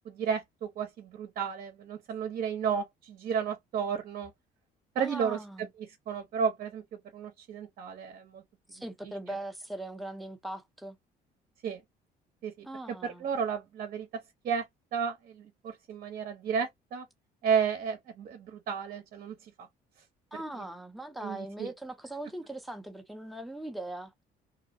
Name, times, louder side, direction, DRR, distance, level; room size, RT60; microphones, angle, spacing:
voice 1, 0.0-4.3 4.9-8.4 9.0-9.1 11.6-11.8 12.4-14.1 14.4-14.6 14.9-17.1 17.4-19.7 21.2-21.7, right 7 dB, 55° right, 0.8 m, -33 dB
voice 2, 5.0-5.7 8.7-11.0 12.6-13.3 20.3-24.1, right 1 dB, ahead, 0.6 m, -40 dB
2.7 x 2.0 x 2.6 m
cardioid pair, 110°, 17 cm